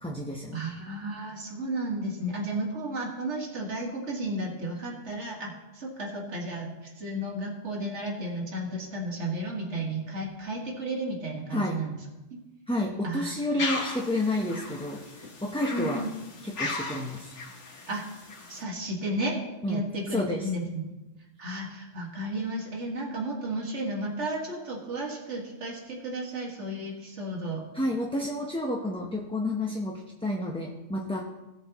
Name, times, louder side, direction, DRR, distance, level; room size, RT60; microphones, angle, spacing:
voice 1, 0.0-0.6 11.5-11.8 12.7-16.0 16.4-17.3 19.6-19.8 20.1-20.5 27.7-31.2, left 1 dB, 5° left, -1 dB, 0.8 m, -30 dB
voice 2, 0.5-11.9 12.3-12.4 13.0-13.3 15.7-16.1 17.9-18.0 18.5-19.4 19.7-20.8 21.4-27.7, right 1 dB, 80° right, -1 dB, 2.2 m, -33 dB
sound 1, 13.6-18.6, left 3 dB, 90° left, 1.7 m, -37 dB
18.0 x 7.7 x 3.0 m, 1.0 s
omnidirectional pair, 1.2 m